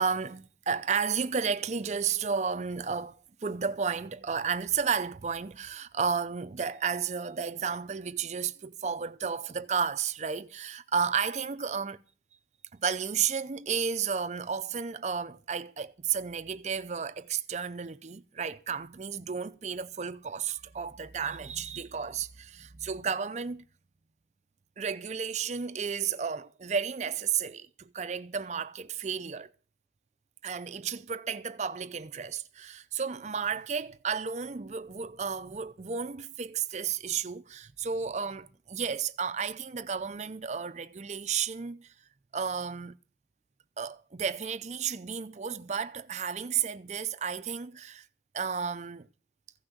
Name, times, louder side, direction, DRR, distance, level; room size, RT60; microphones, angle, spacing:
voice 1, 0.0-12.0 12.7-23.7 24.8-29.5 30.4-41.9 42.3-43.0 43.8-48.1 48.3-49.1, right 6 dB, 40° right, 0.5 m, -32 dB
15.5 x 6.1 x 8.1 m
head